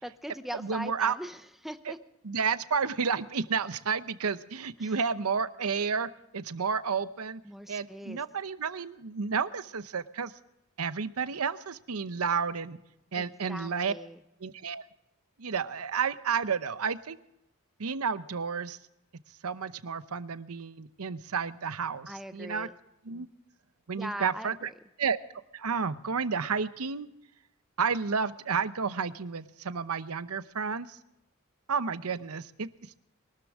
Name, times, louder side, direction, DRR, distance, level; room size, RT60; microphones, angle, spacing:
voice 1, 0.0-2.0 4.8-5.0 7.4-8.2 13.2-14.2 22.1-22.8 23.9-24.7, equal, ahead, 10 dB, 0.7 m, -41 dB
voice 2, 0.6-1.2 1.9-2.0 2.2-6.1 6.3-7.4 7.7-10.3 10.8-12.8 13.1-13.9 14.4-14.8 15.4-17.2 17.8-18.8 19.4-22.7 23.1-23.3 23.9-24.5 25.0-25.2 25.5-27.1 27.8-31.0 31.7-32.7, right 5 dB, 85° right, 13 dB, 0.8 m, -31 dB
23.0 x 12.5 x 3.6 m, 0.87 s
head